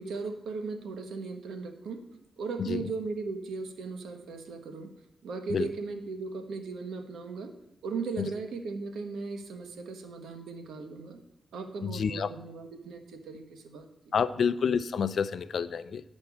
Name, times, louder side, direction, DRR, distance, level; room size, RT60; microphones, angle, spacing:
voice 1, 0.0-2.0 2.4-4.9 5.2-7.5 7.8-11.2 11.5-13.9, right 4 dB, 90° right, 6 dB, 1.1 m, -37 dB
voice 2, 11.8-12.3 14.1-16.0, left 6 dB, 70° left, 14 dB, 0.5 m, -28 dB
11.0 x 4.4 x 7.1 m, 0.87 s
cardioid pair, 70°, 0 cm